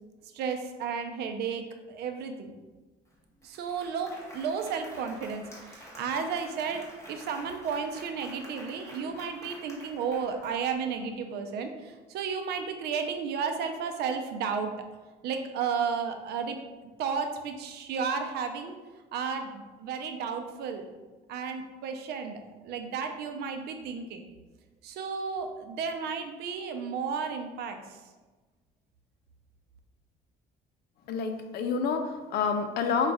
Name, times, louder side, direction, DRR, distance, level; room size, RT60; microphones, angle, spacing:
voice 1, 0.3-2.5 3.4-14.7 15.2-16.6 17.0-18.7 19.1-20.8 21.3-24.2 24.8-27.8, right 6 dB, 75° right, 6 dB, 0.5 m, -33 dB
Applause, 3.1-3.2 3.4-11.0, equal, 15° left, 1.2 m, -49 dB
voice 2, 31.1-33.1, left 5 dB, 70° left, 7 dB, 0.5 m, -28 dB
5.1 x 2.4 x 3.5 m, 1.2 s
cardioid pair, 110°, 17 cm